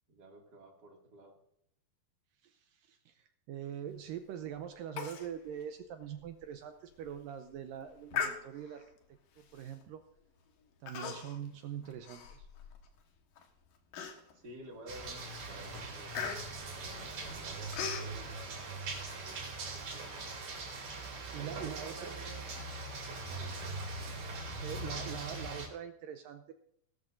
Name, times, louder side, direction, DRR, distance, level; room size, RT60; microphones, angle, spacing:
voice 1, 0.1-1.4 11.4-11.6 14.3-16.1 16.7-19.4 19.7-20.3 21.5-22.4 23.2-23.7, right 1 dB, 35° right, -1 dB, 2.1 m, -52 dB
voice 2, 2.4-8.8 9.4-10.0 10.8-12.5 21.3-22.1 24.1-26.5, right 9 dB, 80° right, 7 dB, 2.1 m, -43 dB
Human voice, 5.0-5.3 5.6-5.7 6.2-6.3 6.9-7.1 8.1-8.8 9.6-9.8 10.9-11.5 11.8-12.9 13.4-13.5 13.9-14.5 15.0-15.2 15.5-18.1, left 6 dB, 65° left, 2.9 m, -39 dB
sound 1, 14.9-25.7, right 3 dB, 55° right, 4.2 m, -41 dB
18.5 x 13.0 x 2.6 m, 0.72 s
omnidirectional pair, 4.5 m